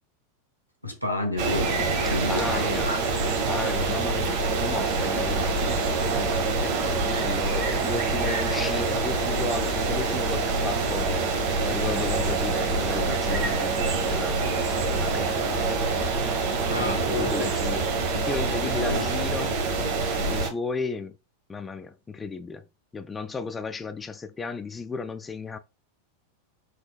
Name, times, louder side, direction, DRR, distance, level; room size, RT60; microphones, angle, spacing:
voice 1, 0.8-3.0 16.7-17.6 18.7-19.1, left 2 dB, 90° left, 1.4 m, -30 dB
sound 1, 1.4-20.5, right 3 dB, 45° right, 1.1 m, -26 dB
voice 2, 2.3-2.9 3.5-11.3 11.6-15.6 16.8-19.6 20.3-21.2 21.5-22.6 22.9-25.6, left 4 dB, 15° left, 0.3 m, -34 dB
5.1 x 3.8 x 2.2 m
figure-of-eight pair, 90°, 0 cm